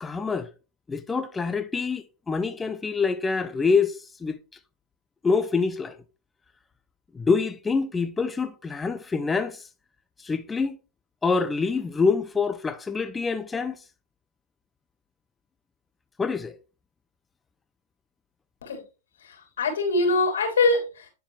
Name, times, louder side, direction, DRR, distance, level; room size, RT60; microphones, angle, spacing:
voice 1, 0.0-0.5 0.9-4.4 5.2-5.9 7.1-9.7 10.2-10.8 11.2-13.8 16.2-16.6, left 4 dB, 15° left, 0.5 m, -26 dB
voice 2, 19.2-21.1, left 3 dB, 85° left, 3.2 m, -23 dB
10.0 x 4.5 x 3.2 m
hypercardioid pair, 125°, 0 cm